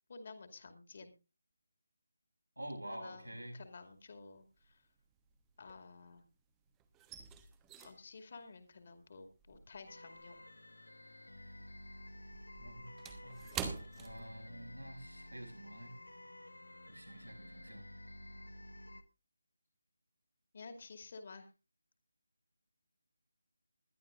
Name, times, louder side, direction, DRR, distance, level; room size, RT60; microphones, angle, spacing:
voice 1, 0.1-1.1 2.8-4.8 5.6-6.2 7.8-10.4 20.5-21.5, left 4 dB, 40° left, 6 dB, 2.3 m, -52 dB
voice 2, 2.6-3.6 12.6-16.0 16.9-17.8, right 1 dB, 80° right, 1 dB, 6.8 m, -49 dB
sound 1, 3.5-4.1 4.4-6.4 6.6-11.3 11.6-14.9 15.2-15.4 15.9-16.1, right 7 dB, 10° right, 1.1 m, -48 dB
sound 2, 9.9-19.0, left 1 dB, 70° left, 1.3 m, -53 dB
21.0 x 12.5 x 2.5 m, 0.30 s
figure-of-eight pair, 155°, 0 cm